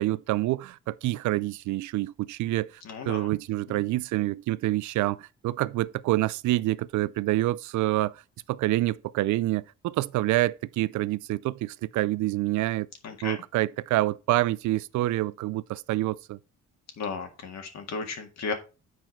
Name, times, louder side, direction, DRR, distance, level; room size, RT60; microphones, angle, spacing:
voice 1, 0.0-2.7 3.1-8.2 8.5-12.9 13.2-16.4, right 17 dB, 75° right, 0.5 m, -27 dB
voice 2, 2.8-3.3 3.7-3.8 13.0-13.4 17.0-18.5, left 4 dB, 60° left, 1.9 m, -34 dB
7.7 x 4.7 x 4.5 m
cardioid pair, 90°, 30 cm